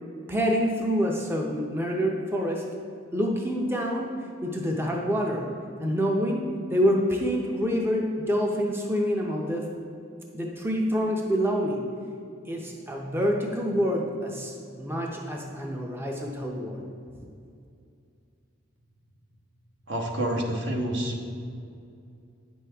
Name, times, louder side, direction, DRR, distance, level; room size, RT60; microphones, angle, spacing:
voice 1, 0.3-2.7 3.1-4.1 4.4-5.5 5.8-9.7 10.3-11.8 12.5-16.8 17.2-17.3, equal, 10° right, 0 dB, 0.5 m, -27 dB
voice 2, 19.9-21.3, right 1 dB, 65° right, 0 dB, 1.1 m, -28 dB
9.0 x 6.3 x 3.4 m, 2.4 s
head